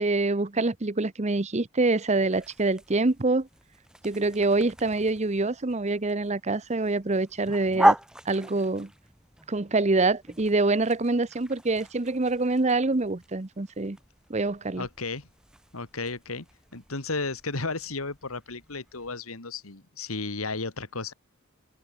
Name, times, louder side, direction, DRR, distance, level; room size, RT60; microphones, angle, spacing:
voice 1, 0.0-3.5 4.0-8.0 8.3-8.9 9.5-14.0 14.3-14.9, right 2 dB, 35° right, 0.9 m, -25 dB
sound 1, 2.3-19.1, right 1 dB, 5° right, 0.8 m, -35 dB
voice 2, 14.8-15.3 15.7-16.5 16.7-21.1, left 3 dB, 90° left, 2.4 m, -33 dB
head